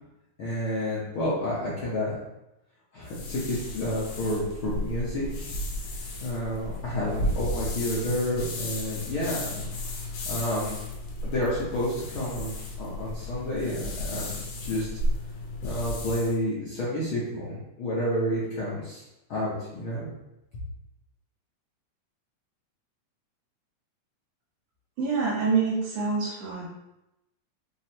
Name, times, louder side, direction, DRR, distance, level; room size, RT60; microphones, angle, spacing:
voice 1, 0.4-2.2 2.9-5.5 6.2-9.9 10.3-10.8 11.2-14.9 15.6-19.0 19.3-20.1, equal, 60° left, -8 dB, 1.4 m, -30 dB
sound 1, 3.1-16.4, left 1 dB, 80° left, 2.4 m, -34 dB
voice 2, 25.0-26.7, right 5 dB, 75° right, -5 dB, 2.8 m, -26 dB
5.9 x 3.0 x 2.8 m, 0.91 s
omnidirectional pair, 3.5 m